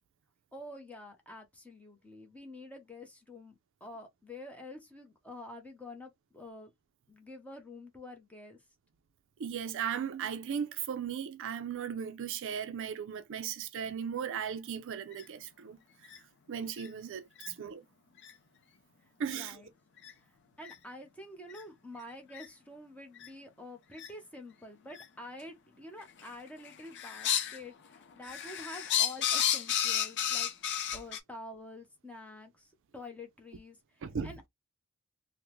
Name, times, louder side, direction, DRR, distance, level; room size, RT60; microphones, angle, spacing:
voice 1, 0.5-6.7 7.1-8.7 17.4-17.6 19.0-19.7 20.2-30.5 30.9-34.5, left 1 dB, 5° left, 0.8 m, -48 dB
voice 2, 9.4-15.8 16.5-17.8 19.2-19.6 34.0-34.3, right 7 dB, 60° right, 0.4 m, -36 dB
sound 1, 15.1-15.2 16.0-16.2 16.8-16.9 17.4-17.5 18.2-18.3 19.3-19.4 20.0-20.1 20.6-20.7 21.5-21.6 22.3-22.5 23.2-23.3 24.0-24.1 24.9-25.0 26.0-26.3 26.6-27.6 28.0-31.2, left 10 dB, 55° left, 0.5 m, -32 dB
3.4 x 2.1 x 3.0 m
head